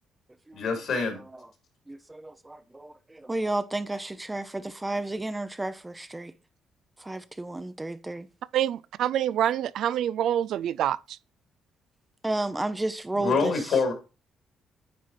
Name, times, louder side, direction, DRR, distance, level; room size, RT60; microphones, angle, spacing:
voice 1, 0.5-1.2 13.2-13.9, left 4 dB, 70° left, 3.1 m, -25 dB
voice 2, 1.9-6.3 7.0-8.3 12.2-13.8, right 2 dB, 15° right, 0.6 m, -32 dB
voice 3, 8.5-11.2, right 11 dB, 75° right, 0.3 m, -26 dB
9.4 x 4.6 x 4.2 m
cardioid pair, 90°, 0 cm